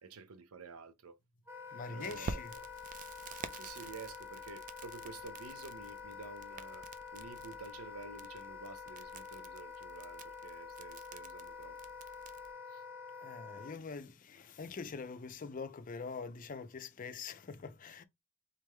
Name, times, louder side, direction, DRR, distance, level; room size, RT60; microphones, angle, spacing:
voice 1, 0.0-1.2 1.9-2.7 3.5-6.9 7.1-11.8 12.7-12.8, right 4 dB, 85° right, 0.6 m, -50 dB
Wind instrument woodwind instrument, 1.5-13.8, left 6 dB, 10° right, 0.8 m, -48 dB
voice 2, 1.7-2.5 13.2-18.0, left 5 dB, 35° left, 0.4 m, -44 dB
Crackle, 2.0-12.5, right 4 dB, 35° right, 0.4 m, -49 dB
3.6 x 3.6 x 3.1 m
head